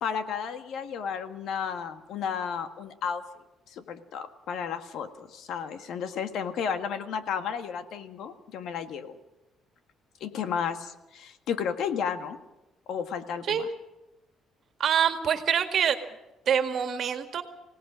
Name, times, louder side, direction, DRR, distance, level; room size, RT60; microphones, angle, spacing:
voice 1, 0.0-3.2 3.7-9.2 10.2-12.4 12.9-13.7, left 7 dB, 70° left, 8 dB, 1.6 m, -33 dB
voice 2, 14.8-16.0 16.5-17.4, right 8 dB, 50° right, 7 dB, 2.0 m, -25 dB
25.0 x 17.5 x 6.3 m, 1.0 s
cardioid pair, 140°, 0 cm